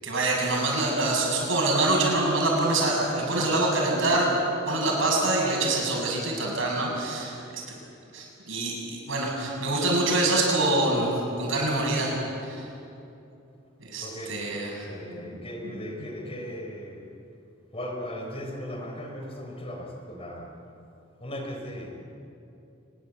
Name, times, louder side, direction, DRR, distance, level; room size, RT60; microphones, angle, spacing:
voice 1, 0.0-4.4 4.7-7.6 8.1-11.1 11.4-12.2 12.4-12.7 13.9-14.9 15.2-16.1, right 2 dB, 70° right, -1 dB, 7.5 m, -25 dB
voice 2, 14.0-14.4 14.8-17.1 17.7-20.6 21.2-21.9, equal, 30° left, 2 dB, 3.9 m, -37 dB
25.0 x 21.5 x 8.5 m, 2.8 s
head